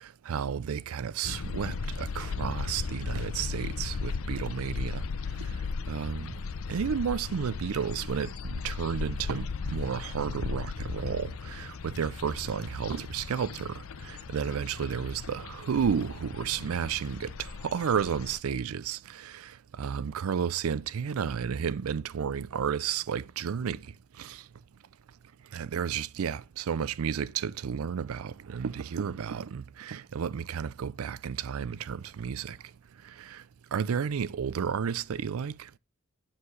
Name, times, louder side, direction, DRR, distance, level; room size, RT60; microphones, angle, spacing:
voice 1, 0.0-5.0 5.4-5.5 5.9-6.3 6.7-23.8 24.2-24.4 25.5-32.6 33.0-33.4 33.7-35.7, right 7 dB, 85° right, 0.4 m, -32 dB
sound 1, 1.2-18.4, left 5 dB, 75° left, 0.5 m, -36 dB
8.8 x 4.8 x 7.0 m
head